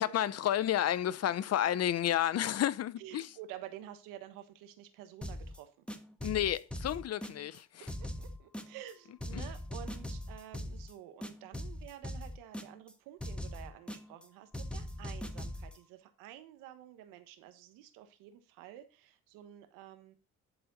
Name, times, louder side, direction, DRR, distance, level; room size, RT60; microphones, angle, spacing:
voice 1, 0.0-3.3 6.2-7.9 9.3-9.5, left 11 dB, 50° left, 0.7 m, -31 dB
voice 2, 3.0-5.9 7.7-20.2, right 12 dB, 85° right, 1.4 m, -50 dB
sound 1, 5.2-5.6 5.9-7.6 7.9-8.9 9.2-10.9 11.2-12.9 13.2-14.2 14.5-15.7, left 1 dB, 5° left, 1.2 m, -41 dB
11.0 x 4.3 x 4.0 m
supercardioid pair, 70°, 32 cm